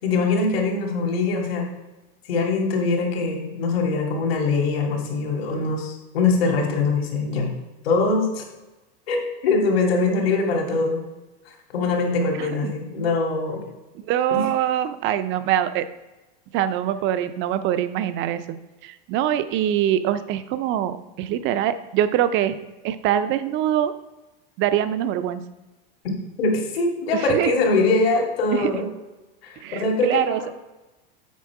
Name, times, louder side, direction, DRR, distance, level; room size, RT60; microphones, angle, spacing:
voice 1, 0.0-1.7 2.3-7.5 7.8-8.4 9.1-11.0 11.7-13.6 14.3-14.4 26.4-28.9 29.4-30.2, left 3 dB, 75° left, 1 dB, 2.5 m, -22 dB
voice 2, 12.4-12.7 13.9-15.9 16.5-18.4 18.8-22.6 22.8-23.9 24.6-25.4 27.1-27.5 28.5-28.7 29.6-30.4, right 11 dB, 40° right, 12 dB, 0.7 m, -23 dB
8.4 x 5.0 x 4.8 m, 1.1 s
supercardioid pair, 125°, 30 cm